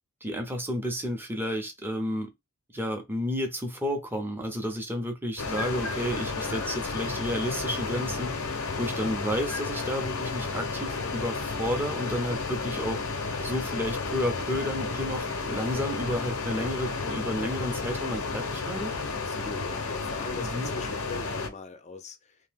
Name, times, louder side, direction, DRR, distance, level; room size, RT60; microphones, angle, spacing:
voice 1, 0.2-2.3 2.7-8.3 8.8-13.0 13.4-18.9 20.5-20.7, equal, 10° right, 0.6 m, -31 dB
sound 1, 5.4-21.5, left 4 dB, 85° left, 0.7 m, -32 dB
voice 2, 19.1-22.4, left 3 dB, 35° left, 0.5 m, -41 dB
2.7 x 2.2 x 3.3 m
head